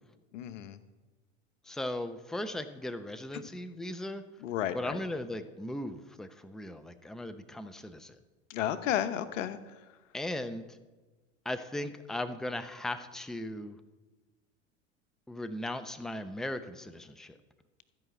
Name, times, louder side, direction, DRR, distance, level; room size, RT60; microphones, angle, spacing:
voice 1, 0.3-0.8 3.3-3.5 4.4-5.0 8.5-9.6, left 11 dB, 80° left, 11 dB, 0.9 m, -32 dB
voice 2, 1.6-4.2 4.7-8.2 10.1-10.7 11.4-13.8 15.3-17.4, left 1 dB, ahead, 9 dB, 0.7 m, -37 dB
14.0 x 5.7 x 8.0 m, 1.2 s
hypercardioid pair, 85°, 37 cm